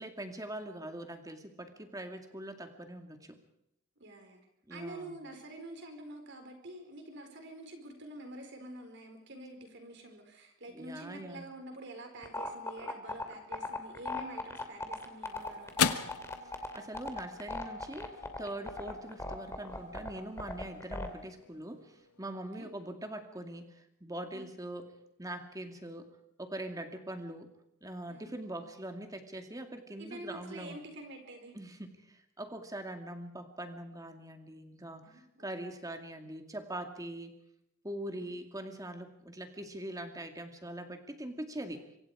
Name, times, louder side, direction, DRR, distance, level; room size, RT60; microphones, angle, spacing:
voice 1, 0.0-3.4 4.7-5.2 10.7-11.5 16.5-24.9 25.2-26.1 26.4-27.5 27.8-30.8 31.5-37.3 37.8-41.9, right 1 dB, 15° right, 6 dB, 2.3 m, -42 dB
voice 2, 4.0-4.4 4.7-16.0 22.6-22.7 24.3-24.5 28.1-28.3 30.0-31.6 35.0-35.5 38.1-38.2, right 1 dB, 55° right, 5 dB, 4.7 m, -47 dB
sound 1, 12.2-21.1, left 2 dB, 10° left, 2.5 m, -37 dB
sound 2, 14.5-23.1, left 7 dB, 85° left, 1.3 m, -40 dB
25.5 x 24.5 x 5.0 m, 0.81 s
head